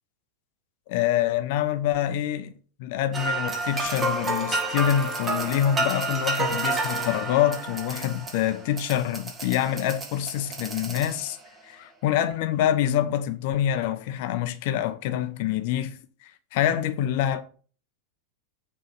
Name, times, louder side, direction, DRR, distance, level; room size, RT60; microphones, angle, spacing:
voice 1, 0.9-2.5 2.8-11.4 11.7-17.4, left 11 dB, 50° left, 0.8 m, -26 dB
sound 1, 3.1-11.5, right 3 dB, 20° right, 1.5 m, -30 dB
6.5 x 3.8 x 5.6 m
figure-of-eight pair, 90°, 0 cm